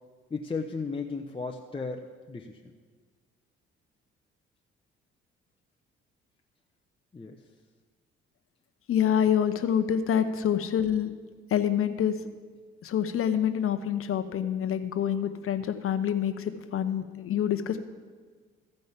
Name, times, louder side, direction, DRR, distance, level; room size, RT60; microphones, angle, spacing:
voice 1, 0.3-2.7 7.1-7.4, left 4 dB, 15° left, 2 dB, 0.8 m, -35 dB
voice 2, 8.9-11.1 11.5-12.2 12.8-17.8, left 9 dB, 45° left, 9 dB, 1.0 m, -26 dB
14.5 x 5.3 x 7.4 m, 1.5 s
hypercardioid pair, 50°, 30 cm